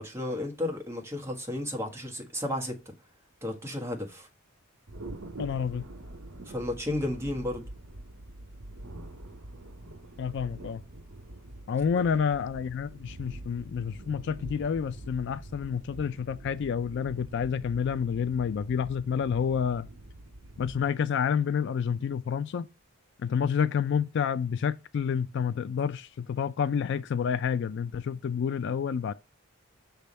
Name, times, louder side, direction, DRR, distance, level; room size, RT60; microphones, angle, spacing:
voice 1, 0.0-2.8 3.4-4.3 6.4-7.7, left 1 dB, 10° right, 1.4 m, -33 dB
Thunder, 4.9-20.9, right 1 dB, 85° right, 1.6 m, -45 dB
voice 2, 5.4-5.9 10.2-10.8 11.7-19.9 20.6-22.7 23.2-29.1, left 7 dB, 55° left, 0.3 m, -29 dB
6.7 x 3.5 x 4.0 m
head